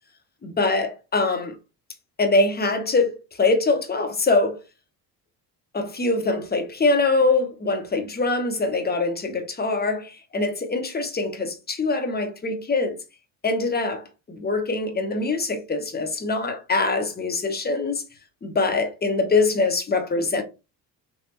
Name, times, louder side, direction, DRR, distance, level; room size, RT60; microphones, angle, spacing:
voice 1, 0.4-1.5 2.2-4.6 5.7-13.0 13.4-18.0 18.4-20.4, left 3 dB, 20° left, 1.0 m, -23 dB
3.3 x 2.3 x 3.0 m
hypercardioid pair, 60°, 49 cm